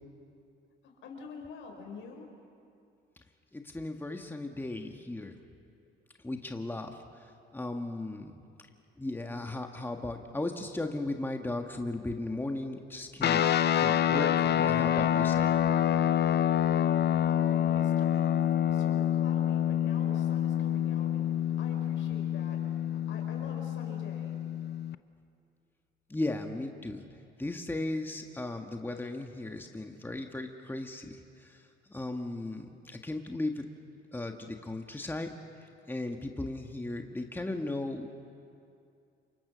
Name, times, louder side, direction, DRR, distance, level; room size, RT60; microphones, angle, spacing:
voice 1, 0.8-2.3 16.7-18.4 18.7-21.3 21.6-22.6 22.9-24.4, left 4 dB, 80° left, 2 dB, 4.7 m, -47 dB
voice 2, 3.5-5.3 6.2-6.9 7.5-8.3 9.0-13.4 13.8-15.5 26.1-27.0 27.4-31.2 31.9-33.6 34.1-35.3 35.9-38.1, left 2 dB, 10° left, 4 dB, 1.5 m, -36 dB
sound 1, 13.2-24.9, left 10 dB, 55° left, 0.7 m, -27 dB
28.0 x 24.0 x 6.3 m, 2.5 s
cardioid pair, 90°, 20 cm